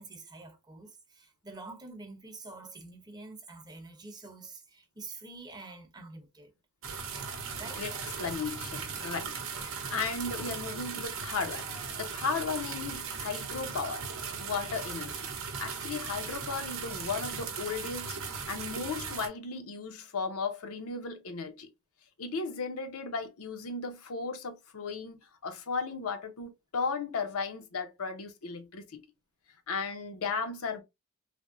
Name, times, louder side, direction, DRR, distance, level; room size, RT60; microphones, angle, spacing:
voice 1, 0.0-6.5 7.5-7.9, right 3 dB, 20° right, 0.7 m, -47 dB
sound 1, 6.8-19.3, right 6 dB, 65° right, 0.7 m, -38 dB
voice 2, 8.2-11.6 12.0-14.1 14.4-15.3 15.6-21.7 22.2-29.0 29.7-30.8, left 4 dB, 70° left, 0.7 m, -35 dB
3.4 x 2.1 x 2.5 m
head